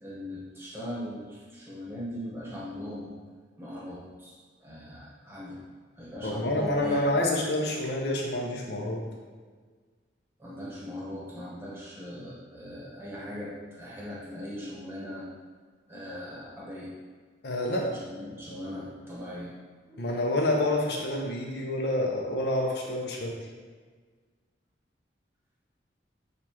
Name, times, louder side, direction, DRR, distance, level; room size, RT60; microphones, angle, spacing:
voice 1, 0.0-3.2 3.6-4.3 4.6-5.6 6.0-7.1 10.4-15.3 15.9-17.0 17.8-19.6 19.9-20.0, left 1 dB, 15° right, -6 dB, 1.0 m, -40 dB
voice 2, 6.2-9.0 17.4-17.9 20.0-23.4, left 1 dB, 65° left, 0 dB, 0.7 m, -28 dB
6.6 x 2.5 x 2.9 m, 1.5 s
head